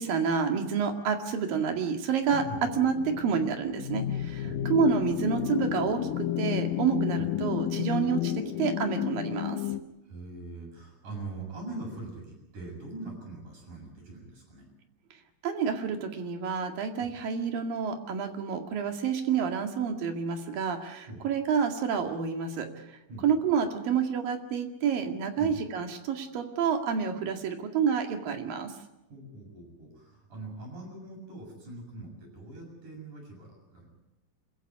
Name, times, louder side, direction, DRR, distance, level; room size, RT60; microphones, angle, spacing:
voice 1, 0.0-2.4 2.8-4.4 4.7-8.3 8.6-9.6 15.4-22.7 23.2-28.7, right 6 dB, 75° right, 4 dB, 3.9 m, -28 dB
sound 1, 2.3-9.8, left 12 dB, 75° left, 2.5 m, -31 dB
voice 2, 10.0-14.7 17.0-17.1 21.1-21.3 23.1-23.2 25.4-25.6 29.1-33.9, right 2 dB, 60° right, 1 dB, 8.7 m, -42 dB
27.5 x 14.5 x 9.7 m, 0.94 s
omnidirectional pair, 4.1 m